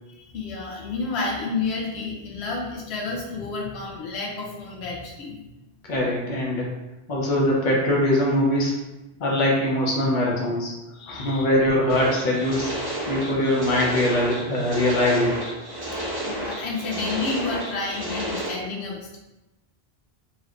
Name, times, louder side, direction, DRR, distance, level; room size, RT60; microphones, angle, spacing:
voice 1, 0.1-5.4 10.9-11.4 16.3-19.2, left 3 dB, 85° left, -1 dB, 0.8 m, -30 dB
voice 2, 5.9-6.7 7.1-8.7 9.2-10.7 11.1-12.7 13.1-15.4, left 1 dB, 50° left, -3 dB, 0.9 m, -22 dB
sound 1, 11.9-18.5, right 1 dB, 25° right, 0.7 m, -31 dB
3.0 x 3.0 x 2.4 m, 0.99 s
omnidirectional pair, 1.1 m